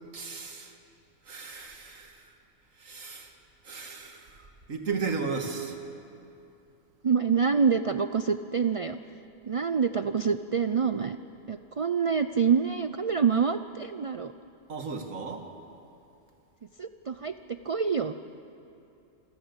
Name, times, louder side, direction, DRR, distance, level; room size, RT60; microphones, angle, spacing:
voice 1, 0.1-0.8 1.2-2.3 2.7-3.3 3.6-5.8 14.7-15.5, right 5 dB, 90° right, 4 dB, 2.2 m, -35 dB
voice 2, 7.0-9.0 9.4-11.2 11.5-14.3 16.8-18.1, right 6 dB, 65° right, 10 dB, 0.3 m, -26 dB
28.0 x 14.0 x 8.2 m, 2.7 s
omnidirectional pair, 1.3 m